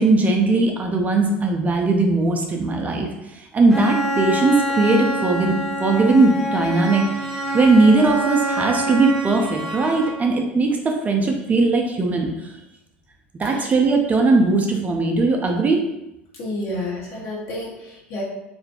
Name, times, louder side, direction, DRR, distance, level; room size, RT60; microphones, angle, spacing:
voice 1, 0.0-12.5 13.4-15.8, right 3 dB, 25° right, 2 dB, 0.4 m, -19 dB
Bowed string instrument, 3.7-10.4, right 1 dB, ahead, 0.7 m, -26 dB
voice 2, 16.4-18.2, left 1 dB, 55° left, -4 dB, 0.9 m, -30 dB
2.4 x 2.1 x 2.8 m, 0.88 s
hypercardioid pair, 80°, 6 cm